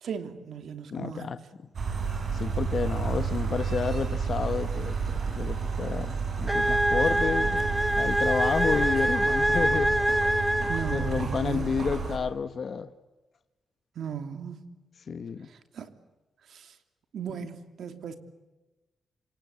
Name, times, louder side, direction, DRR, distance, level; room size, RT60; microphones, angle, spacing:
voice 1, 0.0-1.3 10.7-11.7 14.0-14.6 15.7-15.9 16.5-16.7 17.1-18.2, right 7 dB, 70° right, 2.9 m, -36 dB
voice 2, 0.9-1.4 2.3-7.6 8.0-10.0 10.9-12.9 15.1-15.5 17.3-17.4, left 6 dB, 45° left, 1.2 m, -30 dB
sound 1, 1.7-12.2, right 5 dB, 50° right, 5.7 m, -31 dB
sound 2, 6.5-11.3, right 1 dB, 5° right, 1.4 m, -25 dB
Cough, 7.0-7.9 8.5-10.3, right 1 dB, 25° right, 7.5 m, -50 dB
27.5 x 25.0 x 8.5 m
wide cardioid pair, 145°, 0 cm